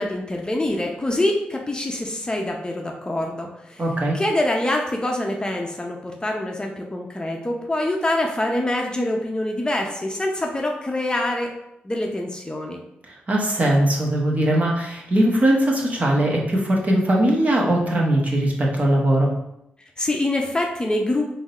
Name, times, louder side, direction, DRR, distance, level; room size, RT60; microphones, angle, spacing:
voice 1, 0.0-3.8 4.1-11.5 11.8-12.8 20.0-21.3, left 1 dB, 20° left, 1 dB, 0.7 m, -25 dB
voice 2, 3.8-4.2 13.3-19.3, right 1 dB, 40° right, -1 dB, 1.1 m, -20 dB
3.6 x 2.7 x 4.2 m, 0.83 s
cardioid pair, 60°, 4 cm